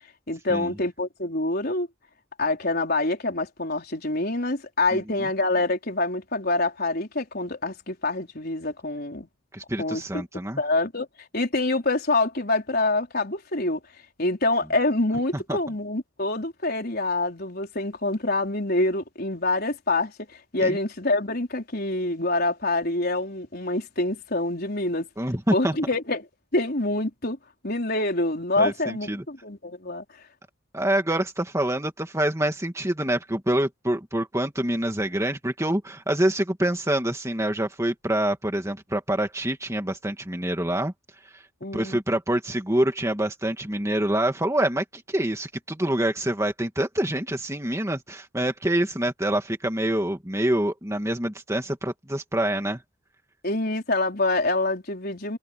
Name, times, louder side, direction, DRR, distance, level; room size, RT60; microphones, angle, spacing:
voice 1, 0.3-1.9 2.4-9.3 9.8-10.3 10.6-11.1 11.3-13.8 14.2-20.1 20.5-25.1 25.5-26.2 26.5-27.4 27.6-30.0 41.6-42.0 53.4-55.4, left 2 dB, 50° left, 4.7 m, -26 dB
voice 2, 4.9-5.3 9.5-10.6 15.3-15.6 20.6-20.8 25.2-25.8 28.6-29.2 30.7-40.9 41.3-41.4 41.7-52.8, right 1 dB, 15° right, 2.4 m, -26 dB
head